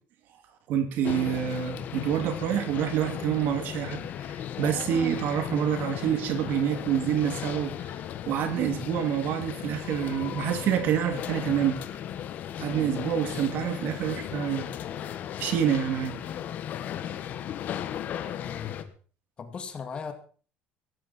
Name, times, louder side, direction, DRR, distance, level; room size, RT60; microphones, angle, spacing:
voice 1, 0.7-7.7 8.3-11.8 12.6-14.7 15.4-16.2, right 9 dB, 55° right, 8 dB, 2.8 m, -27 dB
sound 1, 1.0-18.8, left 10 dB, 45° left, 1.5 m, -36 dB
voice 2, 18.4-18.9 19.4-20.1, left 6 dB, 25° left, 8 dB, 2.3 m, -38 dB
17.0 x 14.0 x 4.4 m, 0.40 s
cardioid pair, 160°, 4 cm